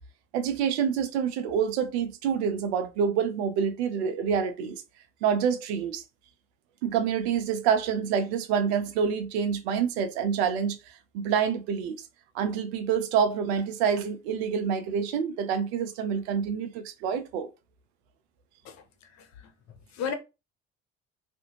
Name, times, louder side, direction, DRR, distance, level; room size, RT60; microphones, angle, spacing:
voice 1, 0.3-4.8 5.2-6.0 6.8-10.8 11.1-12.0 12.3-17.5, right 7 dB, 80° right, 0.5 m, -27 dB
voice 2, 18.6-20.1, left 6 dB, 55° left, 0.7 m, -37 dB
2.5 x 2.0 x 2.8 m
hypercardioid pair, 55°, 32 cm